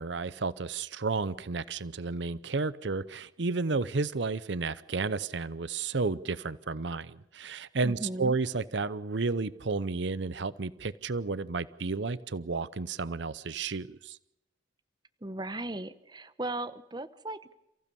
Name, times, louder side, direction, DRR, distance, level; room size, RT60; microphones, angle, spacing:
voice 1, 0.0-14.2, right 4 dB, 70° right, 0.7 m, -32 dB
voice 2, 7.8-8.4 15.2-17.5, right 1 dB, 20° right, 0.9 m, -37 dB
29.0 x 15.5 x 6.9 m
head